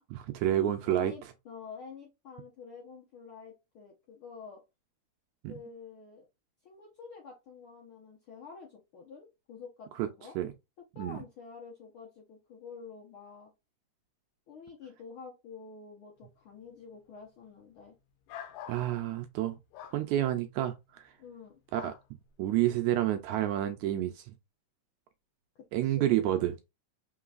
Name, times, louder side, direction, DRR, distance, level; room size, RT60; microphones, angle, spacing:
voice 1, 0.1-1.1 5.4-5.5 10.0-10.1 10.4-10.5 11.0-11.2 18.7-19.6 19.9-21.0 21.7-21.9 22.4-24.3 25.7-26.5, right 13 dB, 80° right, 1.7 m, -29 dB
voice 2, 0.8-4.6 5.5-6.3 6.6-10.4 10.8-13.5 14.5-17.9 21.2-21.6 25.5-26.2, left 5 dB, 70° left, 1.3 m, -48 dB
sound 1, 18.3-18.8 19.7-20.0 21.7-22.0, left 10 dB, 85° left, 2.2 m, -44 dB
4.5 x 3.8 x 2.4 m
omnidirectional pair, 3.7 m